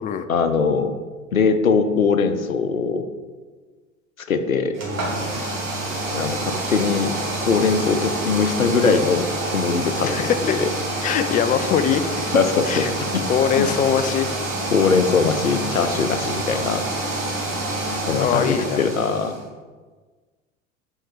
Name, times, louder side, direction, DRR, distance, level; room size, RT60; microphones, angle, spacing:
voice 1, 0.3-0.9 1.3-3.0 4.3-4.7 6.1-7.2 7.5-10.2 10.4-10.7 12.3-13.2 13.6-13.7 14.7-16.9 18.1-19.4, left 5 dB, 90° left, 9 dB, 0.7 m, -21 dB
sound 1, 4.7-19.4, right 2 dB, 80° right, 2.2 m, -27 dB
voice 2, 10.0-10.5 11.0-12.3 12.7-12.9 13.3-14.3 18.1-18.8, left 8 dB, 20° left, 11 dB, 0.4 m, -22 dB
7.8 x 4.7 x 4.6 m, 1.4 s
figure-of-eight pair, 80°, 40 cm